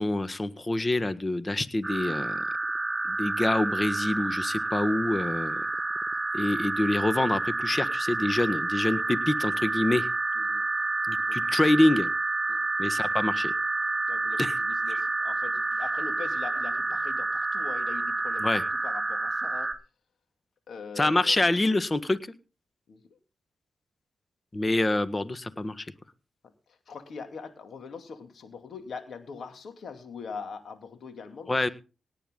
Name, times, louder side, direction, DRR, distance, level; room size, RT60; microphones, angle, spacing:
voice 1, 0.0-2.4 3.1-5.7 6.3-10.1 11.1-12.1 12.8-13.5 14.4-14.5 14.9-15.0 18.4-18.6 21.0-22.2 24.5-25.9 31.5-31.7, left 2 dB, 30° left, 13 dB, 1.5 m, -26 dB
sound 1, 1.8-19.7, right 2 dB, 25° right, 3.1 m, -29 dB
voice 2, 10.4-10.7 11.2-11.6 12.5-12.6 14.1-19.7 20.7-21.4 22.9-23.0 26.9-31.7, left 5 dB, 75° left, 7 dB, 2.8 m, -42 dB
18.5 x 9.3 x 3.9 m, 0.31 s
supercardioid pair, 45°, 0 cm